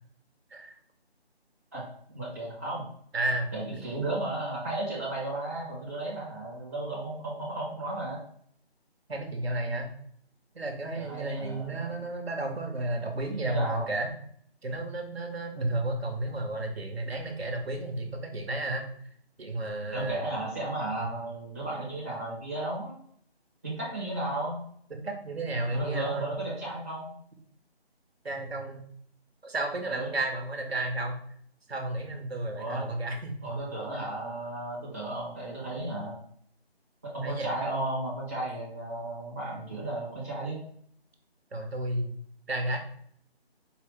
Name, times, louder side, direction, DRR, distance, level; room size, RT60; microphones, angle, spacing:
voice 1, 1.7-2.9 3.5-8.2 10.9-12.0 13.4-13.8 19.9-22.9 23.6-24.6 25.7-27.1 29.8-30.1 32.6-32.8 33.4-36.2 37.0-40.6, right 2 dB, 15° right, -7 dB, 0.8 m, -34 dB
voice 2, 3.1-3.5 9.1-9.9 10.5-14.1 14.6-18.9 19.4-20.2 24.9-26.3 28.2-28.8 29.4-31.1 31.7-33.6 37.2-37.5 41.5-42.2 42.5-42.8, right 2 dB, 70° right, 3 dB, 0.9 m, -32 dB
4.7 x 2.4 x 3.6 m, 0.63 s
figure-of-eight pair, 160°, 32 cm